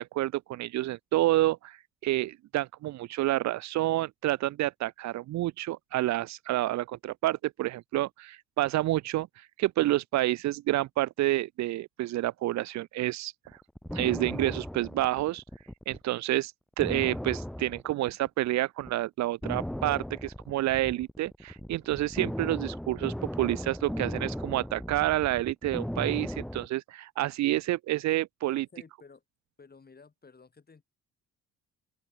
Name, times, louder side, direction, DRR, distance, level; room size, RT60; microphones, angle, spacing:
voice 1, 0.0-9.3 9.6-13.3 13.9-15.4 15.9-16.5 16.8-28.7, right 16 dB, 65° right, 0.5 m, -29 dB
sound 1, 13.5-16.0 16.3-16.4 16.8-18.5 18.8-19.0 19.4-26.7, equal, ahead, 0.6 m, -37 dB
voice 2, 28.5-29.2 29.6-30.8, left 4 dB, 30° left, 6.3 m, -54 dB
open air
cardioid pair, 90°, 30 cm